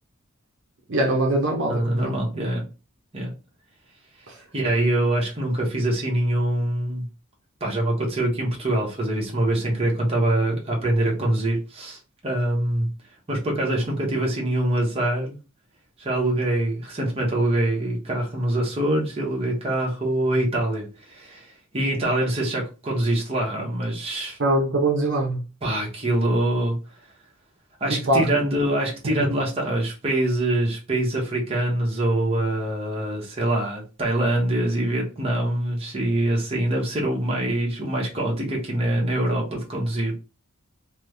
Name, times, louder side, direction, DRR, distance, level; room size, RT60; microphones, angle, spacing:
voice 1, 0.9-2.1 4.3-4.4 24.4-25.4 27.9-28.4 29.0-29.3, right 1 dB, 55° right, 0.7 m, -23 dB
voice 2, 1.7-2.6 3.1-3.3 4.5-7.0 7.6-12.9 13.3-15.4 16.0-24.4 25.6-26.8 27.8-40.2, right 1 dB, 30° right, 1.1 m, -24 dB
3.3 x 2.2 x 3.3 m
head